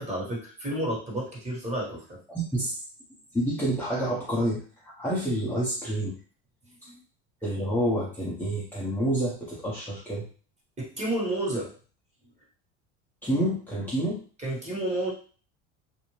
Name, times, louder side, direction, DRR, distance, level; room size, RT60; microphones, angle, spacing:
voice 1, 0.0-2.2 6.9-7.0 10.8-11.7 14.4-15.1, right 1 dB, 20° right, -3 dB, 1.3 m, -31 dB
voice 2, 2.3-2.7 3.3-6.2 7.4-10.3 13.2-14.2, right 1 dB, 5° left, -7 dB, 0.7 m, -28 dB
2.6 x 2.1 x 3.1 m, 0.40 s
supercardioid pair, 100°, 34 cm